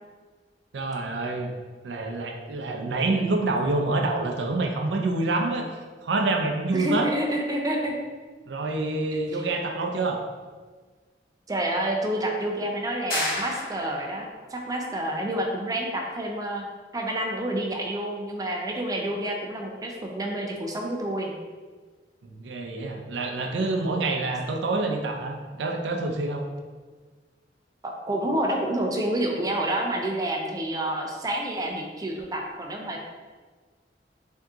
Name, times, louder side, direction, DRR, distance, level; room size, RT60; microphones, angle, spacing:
voice 1, 0.7-1.5 1.8-5.7 6.0-7.1 8.5-10.2 22.2-26.4, right 2 dB, 85° right, 3 dB, 0.5 m, -27 dB
voice 2, 6.7-7.9 11.5-16.6 16.9-21.3 27.8-33.0, right 1 dB, 20° right, 1 dB, 0.4 m, -28 dB
sound 1, 13.1-14.2, left 1 dB, 55° left, 1.0 m, -30 dB
3.5 x 2.8 x 3.5 m, 1.4 s
head